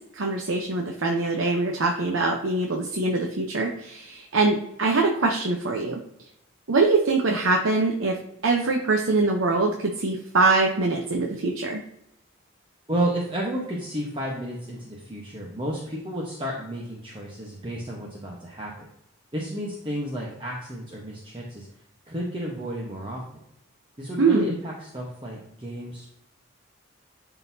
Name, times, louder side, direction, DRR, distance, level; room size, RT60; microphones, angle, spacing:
voice 1, 0.1-6.0 6.7-8.2 8.4-11.8 24.2-24.5, right 3 dB, 80° right, 1 dB, 0.8 m, -23 dB
voice 2, 12.9-18.7 19.3-21.7 22.1-23.2 24.0-26.1, right 1 dB, 25° right, -3 dB, 1.0 m, -32 dB
11.5 x 4.0 x 2.7 m, 0.78 s
head